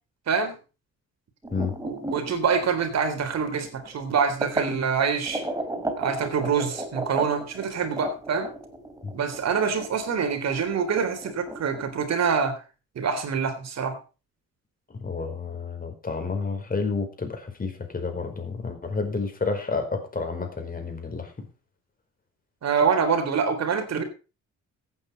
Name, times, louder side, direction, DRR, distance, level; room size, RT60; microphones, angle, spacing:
voice 1, 0.3-0.6 1.8-5.4 6.0-8.5 9.1-12.6 13.0-14.0 22.6-24.0, right 6 dB, 60° right, 7 dB, 3.6 m, -25 dB
sound 1, 1.4-4.7 5.3-12.1, right 1 dB, 10° right, 3.1 m, -35 dB
voice 2, 14.9-21.5, left 4 dB, 30° left, 5 dB, 4.7 m, -30 dB
15.0 x 9.0 x 5.3 m, 0.34 s
cardioid pair, 90°, 30 cm